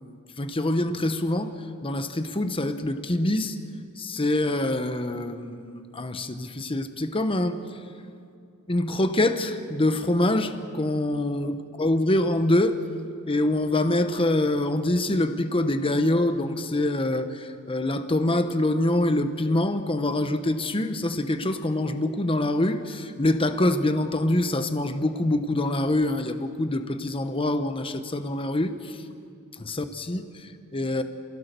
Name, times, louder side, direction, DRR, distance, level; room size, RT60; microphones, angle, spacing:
voice 1, 0.4-1.5 1.8-3.6 4.0-7.6 8.7-12.8 13.3-29.0 29.5-31.0, left 1 dB, 25° left, 9 dB, 1.1 m, -25 dB
28.0 x 16.5 x 6.8 m, 2.4 s
head